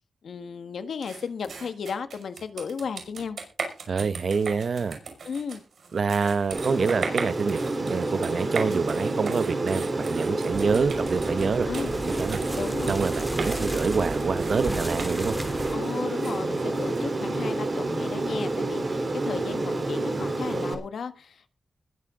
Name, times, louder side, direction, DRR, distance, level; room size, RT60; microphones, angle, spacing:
voice 1, 0.2-3.4 5.2-5.6 11.7-11.9 12.6-13.0 15.7-21.5, left 6 dB, 90° left, 1.6 m, -34 dB
sound 1, 1.0-17.4, right 5 dB, 80° right, 5.9 m, -38 dB
voice 2, 3.9-5.0 5.9-11.7 12.2-12.4 12.9-15.4, right 5 dB, 60° right, 1.0 m, -26 dB
Aircraft, 6.5-20.7, right 2 dB, 40° right, 3.7 m, -29 dB
sound 2, 10.5-15.7, right 1 dB, 5° right, 3.0 m, -36 dB
21.0 x 10.5 x 3.8 m
wide cardioid pair, 110°, 0 cm